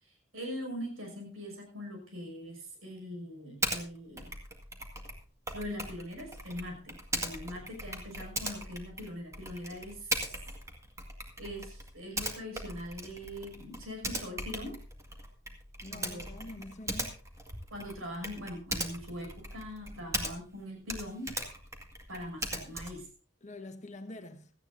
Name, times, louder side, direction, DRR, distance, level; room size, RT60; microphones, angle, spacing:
voice 1, 0.0-4.3 5.5-10.2 11.4-14.8 15.9-16.3 17.7-21.4 22.1-23.1, left 1 dB, 90° right, 6.1 m, -42 dB
Typing, 3.6-3.8 4.2-20.6 20.9-23.1, right 1 dB, 15° right, 1.8 m, -39 dB
voice 2, 15.8-17.2 23.4-24.5, left 2 dB, 35° left, 1.4 m, -45 dB
17.0 x 14.0 x 2.7 m
head